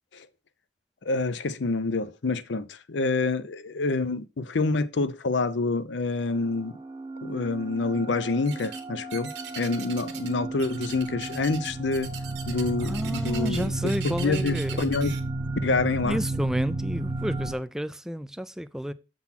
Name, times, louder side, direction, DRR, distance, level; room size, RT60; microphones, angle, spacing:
voice 1, 1.0-6.8 7.2-9.3 9.6-12.1 12.5-15.2 15.6-16.2, left 3 dB, 75° left, 0.6 m, -27 dB
sound 1, 6.2-17.5, right 2 dB, 20° right, 0.7 m, -33 dB
sound 2, 8.4-8.8 9.1-10.3 10.6-15.2, right 8 dB, 60° right, 1.2 m, -40 dB
voice 2, 12.8-14.8 16.0-18.9, equal, 5° right, 0.3 m, -31 dB
7.2 x 3.9 x 5.8 m
head